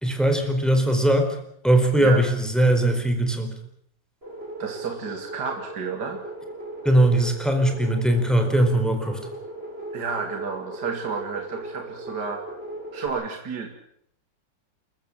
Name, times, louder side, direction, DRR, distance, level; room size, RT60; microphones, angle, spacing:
voice 1, 0.0-1.4 1.6-3.5 6.8-9.2, right 1 dB, ahead, 5 dB, 4.5 m, -20 dB
sound 1, 4.2-13.1, right 1 dB, 30° right, 6.7 m, -37 dB
voice 2, 4.6-6.2 9.9-12.4 12.9-13.7, right 5 dB, 60° right, 4 dB, 2.8 m, -31 dB
28.5 x 14.5 x 8.8 m, 0.67 s
omnidirectional pair, 2.0 m